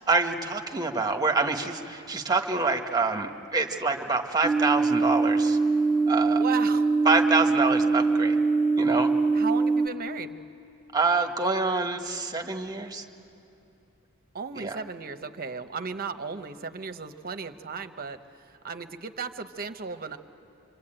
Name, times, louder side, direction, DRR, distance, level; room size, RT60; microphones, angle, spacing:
voice 1, 0.1-5.6 6.1-6.4 7.0-8.4 8.8-9.1 10.9-13.0 14.5-14.8, right 3 dB, 20° right, 4 dB, 1.3 m, -26 dB
sound 1, 4.4-9.9, right 3 dB, 10° left, 0.7 m, -23 dB
voice 2, 6.3-6.9 9.3-10.4 14.3-18.2 18.5-20.2, right 5 dB, 45° right, 8 dB, 0.9 m, -35 dB
26.0 x 25.0 x 8.9 m, 2.8 s
head